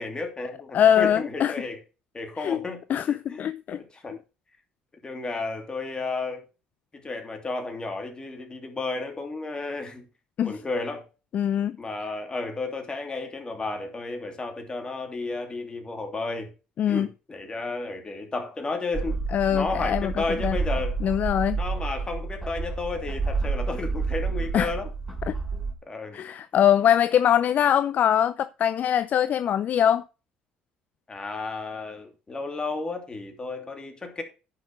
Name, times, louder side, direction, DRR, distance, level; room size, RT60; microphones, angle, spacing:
voice 1, 0.0-1.8 2.1-4.2 5.0-6.4 6.9-10.1 10.4-11.0 11.8-16.5 16.9-19.2 19.5-21.0 21.6-24.9 25.5-26.2 31.1-34.2, left 3 dB, 25° left, 2.8 m, -33 dB
voice 2, 0.7-1.5 2.4-2.6 2.9-3.8 10.4-10.5 11.3-11.8 16.8-17.1 19.3-20.6 21.0-21.6 24.5-24.7 25.3-25.4 26.1-30.0, left 9 dB, 50° left, 0.4 m, -22 dB
sound 1, 18.9-25.7, right 4 dB, ahead, 4.0 m, -30 dB
9.7 x 6.0 x 5.3 m
supercardioid pair, 75°, 3 cm